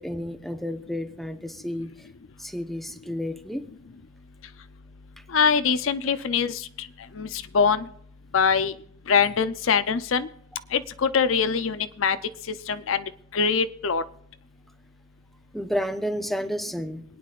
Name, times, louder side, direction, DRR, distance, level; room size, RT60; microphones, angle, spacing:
voice 1, 0.0-1.9 2.4-3.6 15.5-17.0, equal, ahead, 8 dB, 0.8 m, -31 dB
voice 2, 5.3-6.7 7.2-7.9 8.3-8.7 9.1-10.3 10.7-12.2 12.7-13.0 13.3-14.0, left 6 dB, 80° left, 12 dB, 0.6 m, -23 dB
26.5 x 9.3 x 2.5 m, 0.68 s
head